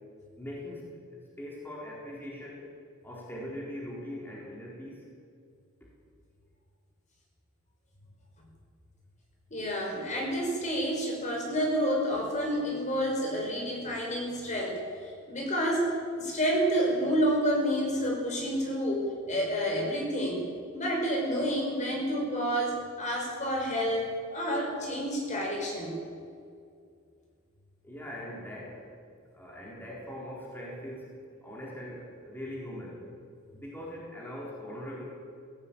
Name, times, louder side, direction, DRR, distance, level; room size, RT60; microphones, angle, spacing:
voice 1, 0.4-0.8 1.1-2.6 3.0-5.1 15.4-15.5 27.8-28.8 29.3-31.1 31.4-33.0 33.5-35.0, equal, 10° left, -5 dB, 4.1 m, -41 dB
voice 2, 9.5-20.4 20.7-26.0, equal, 35° left, -1 dB, 5.3 m, -29 dB
18.0 x 17.0 x 8.9 m, 2.3 s
head